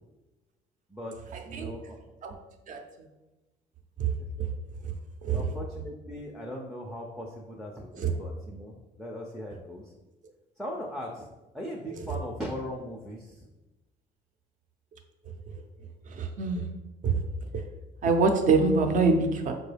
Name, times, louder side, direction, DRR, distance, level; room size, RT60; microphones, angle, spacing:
voice 1, 1.4-2.0 5.3-9.9 10.6-11.3 11.5-13.5, equal, ahead, -1 dB, 0.4 m, -39 dB
voice 2, 16.2-16.7 17.0-17.2 18.0-19.5, right 4 dB, 50° right, 5 dB, 0.5 m, -24 dB
4.7 x 2.2 x 3.2 m, 1.1 s
cardioid pair, 110°, 17 cm